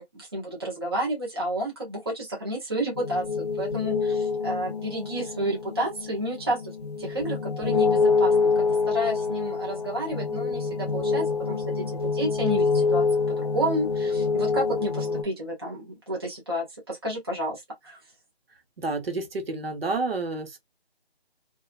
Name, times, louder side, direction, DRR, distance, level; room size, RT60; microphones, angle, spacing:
voice 1, 0.0-6.7 7.0-13.0 13.4-18.0, right 1 dB, 25° right, 0.6 m, -31 dB
sound 1, 2.9-15.2, left 4 dB, 40° left, 0.5 m, -26 dB
voice 2, 18.8-20.6, right 3 dB, 65° right, 0.9 m, -29 dB
2.8 x 2.2 x 2.3 m
figure-of-eight pair, 170°, 32 cm